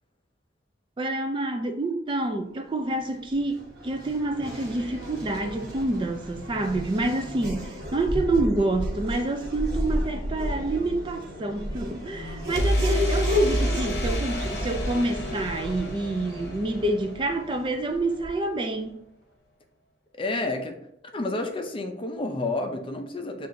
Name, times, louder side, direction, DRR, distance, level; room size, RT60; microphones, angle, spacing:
voice 1, 1.0-19.0, right 2 dB, 25° right, 0.4 m, -27 dB
Race car auto racing / Accelerating revving vroom, 2.9-18.6, equal, 60° right, 1.1 m, -34 dB
sound 1, 4.4-6.4 12.5-18.3, equal, 60° left, 0.8 m, -31 dB
voice 2, 20.2-20.8 21.1-23.5, left 2 dB, 30° left, 0.5 m, -30 dB
7.3 x 2.5 x 2.6 m
head